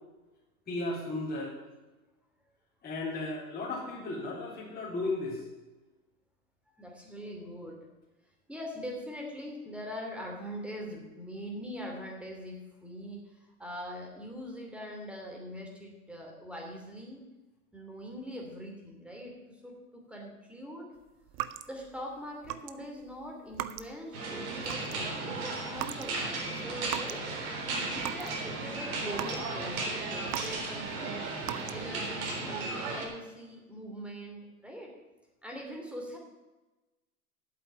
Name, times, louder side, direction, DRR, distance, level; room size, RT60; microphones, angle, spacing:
voice 1, 0.7-1.5 2.8-5.5, left 2 dB, 20° left, -6 dB, 3.9 m, -35 dB
voice 2, 6.8-7.8 8.5-17.2 17.7-21.0 21.7-27.2 27.6-31.3 31.7-34.9 35.4-36.2, equal, 5° right, 0 dB, 2.9 m, -42 dB
sound 1, 21.3-22.0 22.4-22.7 23.0-24.1 24.5-25.1 25.7-26.1 26.4-27.3 27.6-28.4 28.7-30.9 31.4-32.0, right 14 dB, 30° right, 0.5 m, -39 dB
sound 2, 24.1-33.1, right 3 dB, 65° right, 3.8 m, -35 dB
8.4 x 7.7 x 8.6 m, 1.1 s
hypercardioid pair, 115°, 45 cm